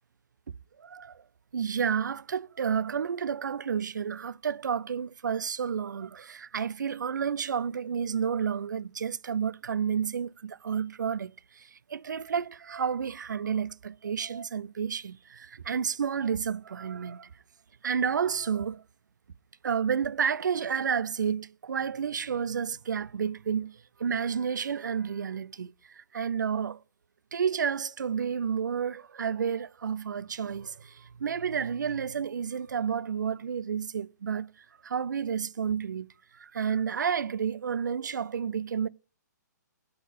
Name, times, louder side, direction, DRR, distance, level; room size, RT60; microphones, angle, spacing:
voice 1, 0.8-1.2 1.5-17.3 17.8-18.8 19.6-26.8 27.3-34.5 34.8-36.1 36.3-38.9, right 7 dB, 80° right, 0.5 m, -31 dB
9.5 x 6.5 x 5.1 m
hypercardioid pair, 135°, 10 cm